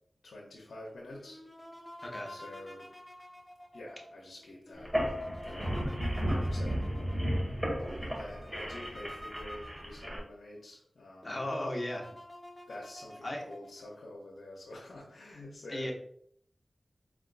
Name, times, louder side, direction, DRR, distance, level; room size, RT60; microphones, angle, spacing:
voice 1, 0.2-1.4 2.3-2.8 3.7-4.9 5.4-5.7 6.3-7.6 8.0-11.4 12.7-15.9, left 1 dB, 85° left, -3 dB, 0.8 m, -47 dB
sound 1, 1.1-10.4 10.9-11.0 11.2-14.0, left 1 dB, 10° left, 0.7 m, -50 dB
voice 2, 2.0-2.3 11.2-12.1 13.2-13.4 15.7-15.9, left 1 dB, 35° left, 0 dB, 1.0 m, -35 dB
sound 2, 4.8-10.2, equal, 15° right, 1.7 m, -33 dB
4.4 x 3.5 x 2.5 m, 0.64 s
cardioid pair, 50°, 0 cm